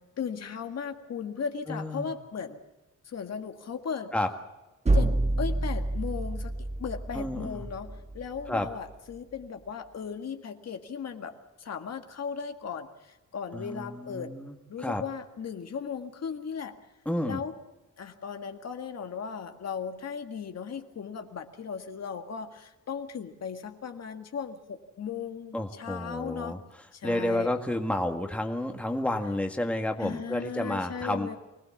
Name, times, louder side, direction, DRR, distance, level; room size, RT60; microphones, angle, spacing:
voice 1, 0.2-2.6 3.1-4.1 4.9-14.3 14.7-16.8 17.2-17.6 18.0-26.6 26.9-27.5 30.0-31.4, left 6 dB, 55° left, 6 dB, 1.8 m, -37 dB
voice 2, 1.7-2.1 4.1-4.3 7.1-7.6 8.5-8.7 13.5-15.0 17.0-17.4 25.5-26.6 27.0-31.4, left 1 dB, 5° left, 4 dB, 1.7 m, -30 dB
sound 1, 4.9-8.7, right 2 dB, 20° right, 1.3 m, -28 dB
24.0 x 18.5 x 7.2 m, 1.0 s
wide cardioid pair, 135°, 30 cm